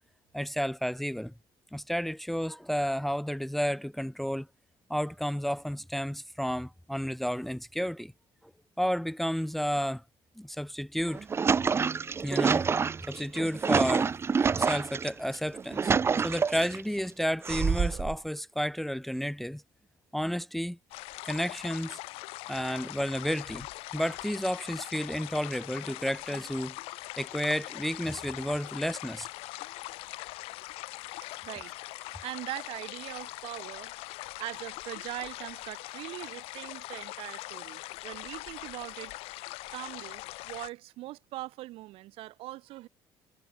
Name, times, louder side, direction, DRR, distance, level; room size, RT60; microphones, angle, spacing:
voice 1, 0.3-1.3 1.7-4.5 4.9-8.1 8.8-10.0 10.4-11.3 12.2-12.7 13.1-14.1 14.5-15.9 16.2-19.6 20.1-20.8 21.2-22.0 22.5-23.7 23.9-26.8 27.2-29.3, equal, ahead, 1.2 m, -31 dB
sound 1, 11.0-15.1 15.5-16.8 17.4-18.2, right 5 dB, 25° right, 1.2 m, -27 dB
sound 2, 20.9-40.7, left 21 dB, 85° left, 2.5 m, -42 dB
voice 2, 31.4-33.9 34.4-39.1 39.7-42.9, right 17 dB, 75° right, 4.4 m, -41 dB
cardioid pair, 125°, 10 cm